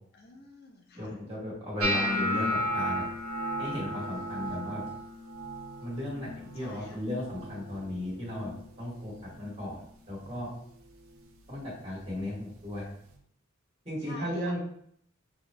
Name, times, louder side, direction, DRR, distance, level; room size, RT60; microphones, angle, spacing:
voice 1, 0.1-1.2 6.5-7.0 14.0-14.6, left 2 dB, 45° left, 1 dB, 0.5 m, -49 dB
voice 2, 0.9-3.0 3.6-4.8 5.8-8.5 8.8-9.8 10.1-10.5 11.5-12.9 13.8-14.6, left 1 dB, 25° right, -7 dB, 1.6 m, -35 dB
sound 1, 1.8-7.9 8.2-8.7 9.0-9.6 10.2-10.4 12.2-12.3, equal, 75° right, 0.6 m, -34 dB
5.7 x 2.9 x 2.2 m, 0.67 s
head